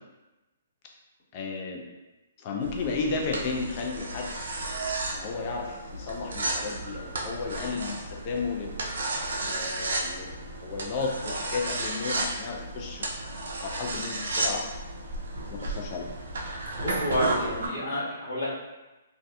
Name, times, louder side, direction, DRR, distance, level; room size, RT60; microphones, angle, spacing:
voice 1, 1.3-1.8 2.4-4.3 5.1-8.7 9.4-10.3 10.6-13.1 13.6-14.7 15.5-16.1, left 4 dB, 35° left, 0 dB, 0.4 m, -33 dB
sound 1, 2.6-17.7, right 2 dB, 75° right, 0.5 m, -33 dB
voice 2, 16.8-18.5, equal, 55° left, -7 dB, 1.3 m, -29 dB
2.6 x 2.2 x 2.3 m, 1.1 s
hypercardioid pair, 140°, 0 cm